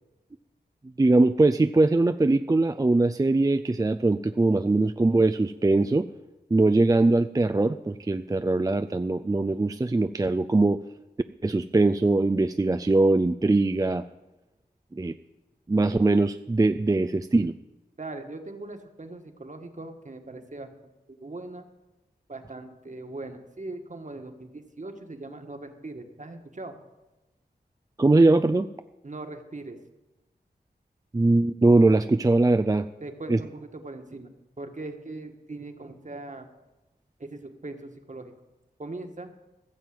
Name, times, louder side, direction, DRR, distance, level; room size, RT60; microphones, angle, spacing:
voice 1, 1.0-6.1 6.5-10.8 11.4-14.0 14.9-15.1 15.7-17.5 28.0-28.7 31.1-32.9 33.3-33.4, right 2 dB, 20° right, 10 dB, 0.4 m, -21 dB
voice 2, 18.0-20.7 21.1-21.6 22.3-26.8 29.0-29.8 33.0-34.3 34.6-36.5 37.2-38.3 38.8-39.3, right 2 dB, 45° right, 5 dB, 1.7 m, -40 dB
15.5 x 7.4 x 7.7 m, 1.0 s
wide cardioid pair, 55°, 18 cm